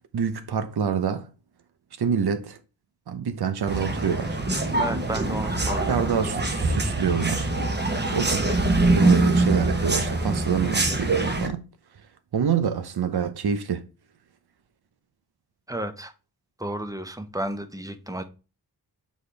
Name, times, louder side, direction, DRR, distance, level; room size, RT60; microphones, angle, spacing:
voice 1, 0.1-1.3 2.0-2.6 3.1-4.4 5.9-7.5 8.1-8.6 8.9-11.7 12.3-13.8, right 7 dB, 80° right, 0.8 m, -26 dB
sound 1, 3.7-11.5, right 2 dB, 25° right, 1.1 m, -24 dB
voice 2, 4.8-6.0 9.0-9.3 15.7-16.1 16.6-18.2, right 1 dB, 10° right, 0.7 m, -32 dB
7.3 x 4.3 x 3.3 m
wide cardioid pair, 105°, 38 cm